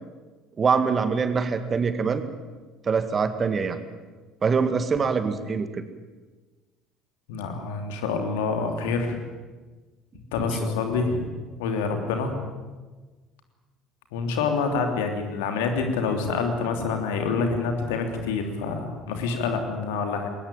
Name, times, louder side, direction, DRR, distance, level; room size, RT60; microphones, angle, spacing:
voice 1, 0.6-2.2 2.8-3.8 4.4-5.7 10.6-10.7, right 5 dB, 30° right, 10 dB, 1.9 m, -24 dB
voice 2, 7.3-9.2 10.3-11.3 11.6-12.4 14.1-20.3, left 4 dB, 65° left, 5 dB, 3.1 m, -27 dB
21.0 x 19.0 x 9.2 m, 1.3 s
figure-of-eight pair, 60°, 0 cm